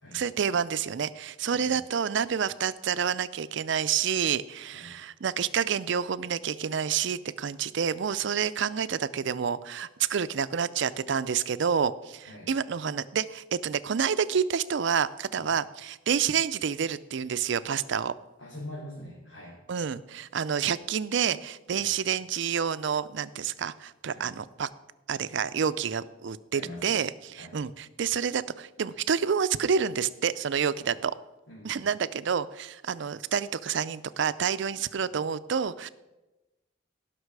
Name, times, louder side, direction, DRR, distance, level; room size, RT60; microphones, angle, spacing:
voice 1, 0.1-18.1 19.7-24.7 25.1-31.1 31.6-35.9, right 7 dB, 65° right, 16 dB, 0.5 m, -28 dB
voice 2, 18.4-19.6 21.7-21.9 24.1-24.3 26.5-27.0 27.3-27.5 30.8-30.9 31.5-31.8, left 1 dB, 85° left, -5 dB, 3.0 m, -44 dB
18.0 x 6.0 x 4.7 m, 1.0 s
head